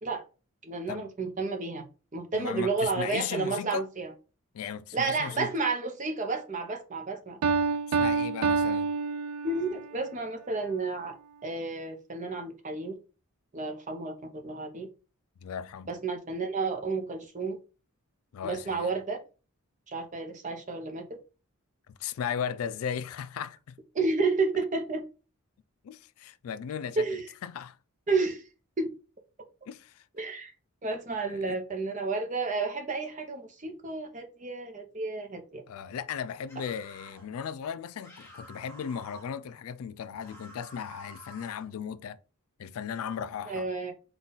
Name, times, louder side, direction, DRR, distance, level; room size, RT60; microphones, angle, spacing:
voice 1, 0.6-1.8 2.1-4.1 4.9-7.4 9.4-11.1 11.4-13.0 13.5-14.9 15.9-17.6 18.4-19.2 19.9-21.0 23.9-25.0 27.0-27.2 28.1-28.4 28.8-28.9 30.2-30.5 30.8-35.6 43.5-43.9, right 3 dB, 35° right, 0.6 m, -31 dB
voice 2, 2.3-3.8 4.5-5.5 7.9-8.9 15.4-15.9 18.3-18.9 21.9-23.7 25.8-27.0 27.4-27.8 29.7-30.0 31.3-31.6 35.7-42.2 42.6-43.7, left 7 dB, 75° left, 0.3 m, -36 dB
Piano, 7.4-9.9, right 4 dB, 80° right, 0.3 m, -27 dB
sound 1, 36.5-37.3 38.0-39.3 40.2-41.7, right 1 dB, 10° left, 1.1 m, -50 dB
4.0 x 2.3 x 3.8 m
head